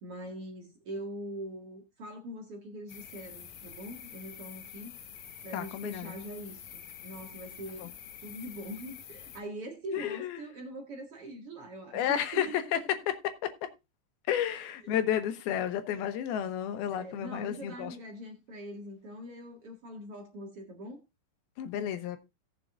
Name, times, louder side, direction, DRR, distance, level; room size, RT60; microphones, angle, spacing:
voice 1, 0.0-4.9 5.4-7.9 8.2-12.6 14.4-15.0 16.9-21.0, right 1 dB, 45° right, 2.3 m, -43 dB
sound 1, 2.9-9.4, left 8 dB, 65° left, 2.1 m, -47 dB
voice 2, 5.5-6.2 7.8-7.9 9.9-10.4 11.9-13.0 13.2-13.7 14.3-18.0 21.6-22.2, left 10 dB, 80° left, 2.9 m, -32 dB
18.0 x 7.5 x 2.5 m
omnidirectional pair, 4.4 m